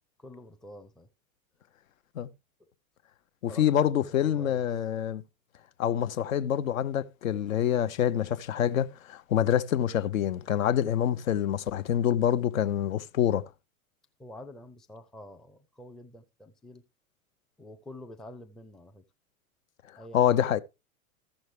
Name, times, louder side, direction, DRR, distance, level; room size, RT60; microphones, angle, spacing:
voice 1, 0.2-1.1 3.5-4.6 14.2-16.8 17.6-19.0 20.0-20.6, left 1 dB, ahead, 0.5 m, -48 dB
voice 2, 3.4-5.2 5.8-13.5 20.1-20.6, left 10 dB, 65° left, 0.8 m, -26 dB
14.5 x 6.3 x 3.2 m
figure-of-eight pair, 90°, 43 cm